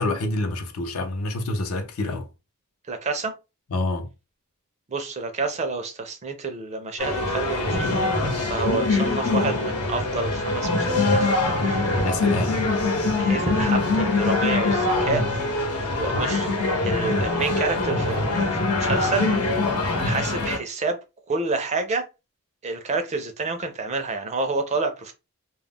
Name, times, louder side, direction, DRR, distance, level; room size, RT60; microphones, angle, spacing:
voice 1, 0.0-2.3 3.7-4.1 12.0-12.6, left 2 dB, 70° left, 0.5 m, -27 dB
voice 2, 2.9-3.3 4.9-7.9 8.5-11.8 13.0-15.2 15.5-15.6 16.0-19.3 20.0-21.0 21.3-22.1 22.6-25.1, right 3 dB, 30° right, 0.4 m, -29 dB
sound 1, 7.0-20.6, left 2 dB, 85° left, 0.9 m, -23 dB
2.3 x 2.0 x 3.4 m
head